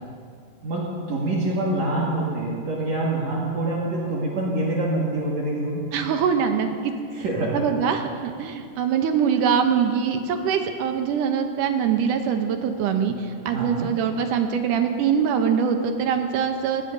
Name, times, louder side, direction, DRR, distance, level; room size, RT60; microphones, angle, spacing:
voice 1, 0.6-5.9 7.1-7.7 13.5-13.9, right 2 dB, 55° right, -5 dB, 2.8 m, -25 dB
voice 2, 5.9-6.9 7.5-16.9, right 7 dB, 75° right, 6 dB, 2.3 m, -23 dB
20.5 x 16.5 x 2.7 m, 2.2 s
omnidirectional pair, 3.8 m